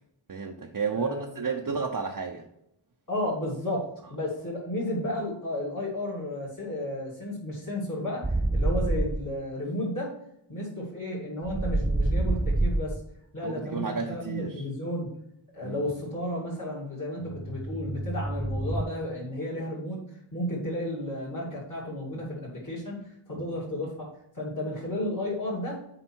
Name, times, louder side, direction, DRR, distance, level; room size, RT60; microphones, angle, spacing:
voice 1, 0.3-1.1 1.3-2.4 13.4-14.6 15.6-15.9 22.1-22.2 23.3-23.4, right 5 dB, 45° right, 1 dB, 0.8 m, -32 dB
voice 2, 0.9-1.3 3.1-3.8 4.1-10.1 10.5-13.0 13.3-15.1 15.5-24.1 24.3-25.8, left 1 dB, 40° left, -7 dB, 2.6 m, -33 dB
sound 1, 8.2-9.2 11.4-13.0 17.2-18.8, right 2 dB, 10° right, 0.4 m, -27 dB
7.8 x 5.0 x 4.6 m, 0.77 s
wide cardioid pair, 70°, 48 cm